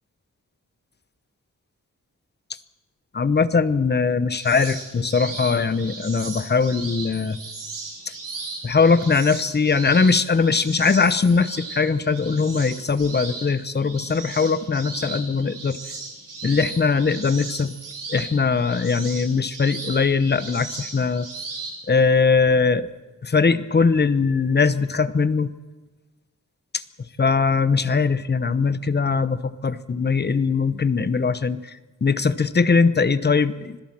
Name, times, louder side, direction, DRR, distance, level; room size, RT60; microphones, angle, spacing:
voice 1, 3.1-7.4 8.6-15.8 16.4-17.7 18.1-21.3 21.9-22.9 23.2-25.5 26.7-26.8 27.2-31.6 32.0-33.8, left 4 dB, 35° left, 14 dB, 0.8 m, -21 dB
sound 1, 4.4-21.8, right 3 dB, 85° right, 7.4 m, -37 dB
26.0 x 17.0 x 7.4 m, 1.2 s
wide cardioid pair, 175°, 31 cm